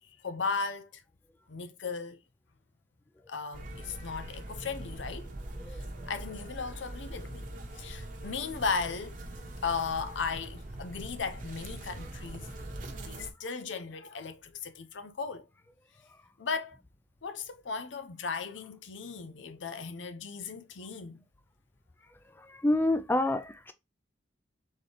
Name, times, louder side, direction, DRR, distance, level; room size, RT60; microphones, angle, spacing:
voice 1, 0.2-1.0 1.5-2.2 3.3-5.3 5.7-7.5 7.7-9.2 9.6-12.5 13.1-15.4 16.4-16.8 17.2-21.2, left 5 dB, 90° left, 0.6 m, -36 dB
sound 1, 3.5-13.3, right 1 dB, 45° right, 1.0 m, -42 dB
voice 2, 22.5-23.7, left 1 dB, 10° left, 0.4 m, -27 dB
4.2 x 3.8 x 3.3 m
head